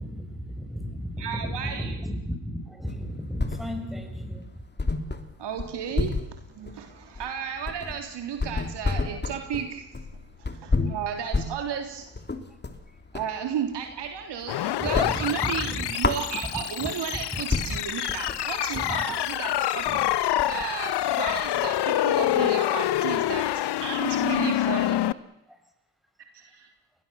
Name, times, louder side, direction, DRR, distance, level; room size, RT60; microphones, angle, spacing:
voice 1, 0.0-4.5 14.8-15.8 17.3-17.4 17.7-17.8 18.9-19.0, equal, ahead, 5 dB, 7.2 m, -34 dB
voice 2, 1.2-2.0 5.4-6.1 6.5-9.9 10.4-12.1 13.1-23.5 23.8-25.0 26.3-26.7, right 8 dB, 55° right, 4 dB, 3.6 m, -33 dB
sound 1, 2.9-4.0 4.3-4.4 4.8-13.4 13.8-14.5 14.8-16.8 17.2-17.3 17.5-21.7, left 3 dB, 20° left, 3.0 m, -31 dB
sound 2, 14.5-25.1, left 13 dB, 50° left, 1.2 m, -26 dB
29.5 x 21.5 x 7.1 m, 0.92 s
hypercardioid pair, 65°, 50 cm